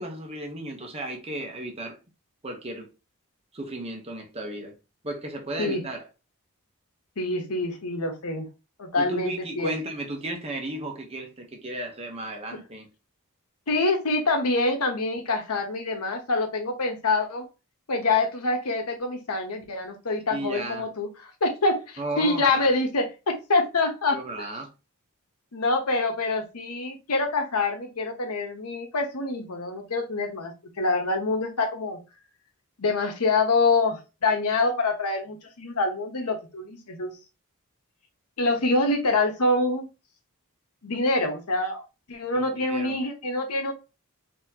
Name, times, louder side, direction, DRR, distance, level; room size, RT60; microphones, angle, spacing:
voice 1, 0.0-2.0 2.4-2.9 3.5-4.7 5.0-6.1 9.0-12.9 20.3-20.8 22.0-22.7 24.1-24.7 42.3-43.0, right 1 dB, 25° right, 0.8 m, -34 dB
voice 2, 7.2-8.5 8.8-9.7 13.7-17.5 17.9-24.5 25.5-32.0 32.8-37.1 38.4-39.8 40.8-43.7, left 3 dB, 90° left, 1.0 m, -26 dB
4.1 x 2.8 x 2.8 m
head